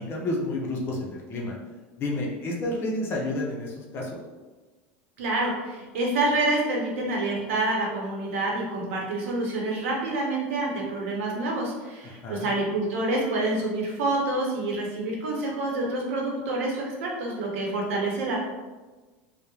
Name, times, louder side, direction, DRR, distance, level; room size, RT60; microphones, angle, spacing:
voice 1, 0.0-1.5 2.0-4.2 12.0-12.5, left 1 dB, 35° left, -2 dB, 0.5 m, -30 dB
voice 2, 5.2-18.4, right 2 dB, 85° right, -2 dB, 0.7 m, -27 dB
2.9 x 2.1 x 2.3 m, 1.2 s
supercardioid pair, 130°, 7 cm